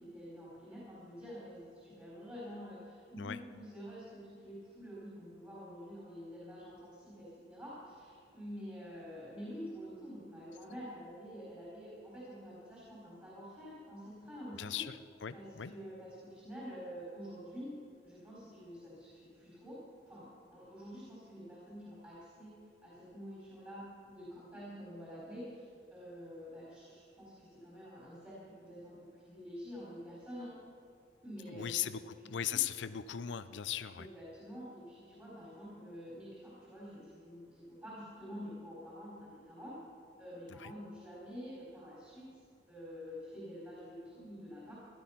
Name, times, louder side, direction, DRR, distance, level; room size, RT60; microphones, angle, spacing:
voice 1, 0.0-14.8 15.3-30.5 31.2-31.9 32.2-32.6 33.9-39.8 40.2-42.3 42.7-44.7, equal, 15° right, -7 dB, 4.1 m, -48 dB
voice 2, 14.6-15.7 31.5-34.1 40.5-40.7, left 10 dB, 80° left, 13 dB, 0.5 m, -38 dB
16.0 x 12.0 x 5.7 m, 2.4 s
head